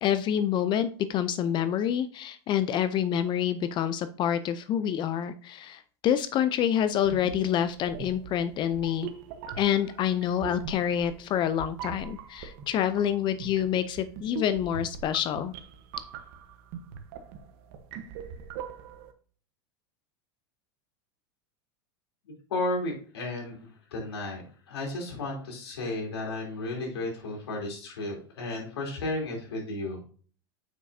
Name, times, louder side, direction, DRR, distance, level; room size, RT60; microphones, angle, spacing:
voice 1, 0.0-9.1 9.6-15.5, left 9 dB, 35° left, 12 dB, 0.5 m, -27 dB
sound 1, 7.0-19.1, right 6 dB, 60° right, 1.1 m, -42 dB
voice 2, 22.5-30.0, left 2 dB, 85° left, -1 dB, 3.3 m, -33 dB
7.3 x 5.8 x 2.7 m, 0.43 s
supercardioid pair, 120°, 13 cm